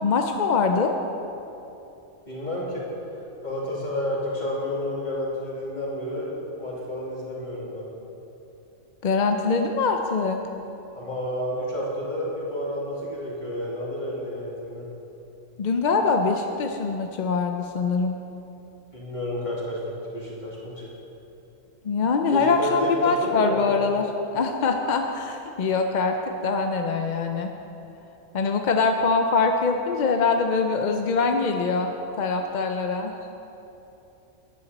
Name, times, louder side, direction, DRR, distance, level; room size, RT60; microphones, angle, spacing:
voice 1, 0.0-0.9 9.0-10.4 15.6-18.2 21.8-27.5 28.3-31.9 32.2-33.3, left 4 dB, 55° left, 5 dB, 0.5 m, -23 dB
voice 2, 2.3-2.8 3.4-7.8 10.9-14.9 18.9-19.8 20.1-20.9 22.3-23.6, left 1 dB, 35° left, -6 dB, 2.7 m, -30 dB
14.0 x 9.9 x 4.1 m, 3.0 s
omnidirectional pair, 1.4 m